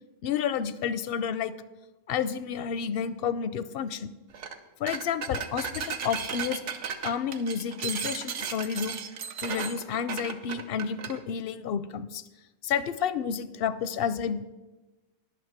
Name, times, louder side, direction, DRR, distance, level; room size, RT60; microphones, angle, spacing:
voice 1, 0.2-1.5 2.1-4.1 4.8-6.6 7.0-9.0 9.4-12.2 12.6-14.5, left 7 dB, 65° left, 14 dB, 0.6 m, -30 dB
sound 1, 4.3-4.6 4.9-11.2, right 6 dB, 70° right, 1.1 m, -35 dB
10.5 x 6.1 x 7.2 m, 1.1 s
omnidirectional pair, 1.3 m